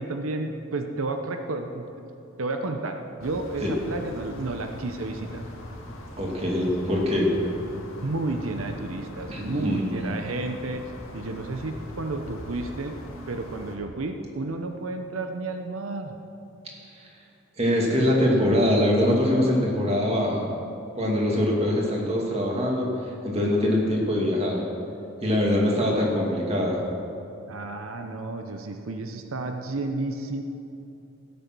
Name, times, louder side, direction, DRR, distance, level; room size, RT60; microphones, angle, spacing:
voice 1, 0.0-1.9 2.4-5.5 8.0-10.8 11.1-12.9 13.3-16.1 27.5-30.4, right 2 dB, 90° right, 5 dB, 0.8 m, -31 dB
sound 1, 3.2-13.8, left 1 dB, 75° left, 1.9 m, -41 dB
voice 2, 6.2-7.3 9.3-10.0 17.6-20.5 20.9-22.9 23.2-24.6 25.2-26.8, left 1 dB, 30° right, -2 dB, 2.4 m, -23 dB
16.0 x 8.4 x 6.1 m, 2.8 s
head